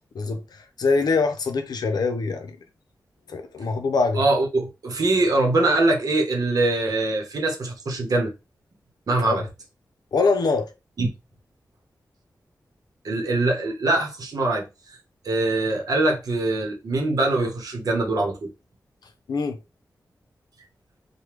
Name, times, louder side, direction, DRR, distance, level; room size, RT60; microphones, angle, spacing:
voice 1, 0.1-2.6 3.3-4.2 9.2-9.4 10.1-10.7 19.3-19.6, left 4 dB, 80° left, 0.6 m, -24 dB
voice 2, 4.1-8.3 9.1-9.4 11.0-11.1 13.0-15.0 15.2-18.5, right 2 dB, 65° right, 0.9 m, -23 dB
3.3 x 2.2 x 3.0 m
wide cardioid pair, 130°, 7 cm